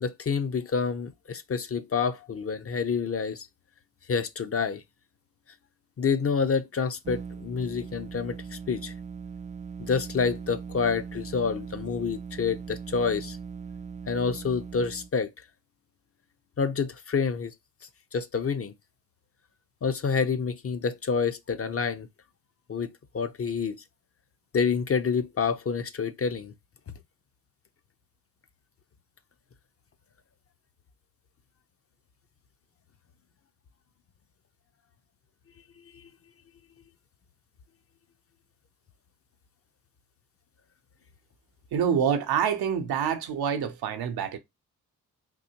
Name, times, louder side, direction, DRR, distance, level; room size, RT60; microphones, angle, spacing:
voice 1, 0.0-3.5 4.1-4.8 6.0-8.9 9.8-13.4 14.1-15.3 16.6-17.5 18.1-18.7 19.8-22.1 22.7-23.8 24.5-26.5 35.9-36.0, left 5 dB, 40° left, 0.6 m, -28 dB
sound 1, 7.0-15.1, right 6 dB, 20° right, 0.3 m, -40 dB
voice 2, 41.7-44.4, right 8 dB, 80° right, 0.8 m, -26 dB
3.9 x 2.7 x 2.8 m
supercardioid pair, 50°, 37 cm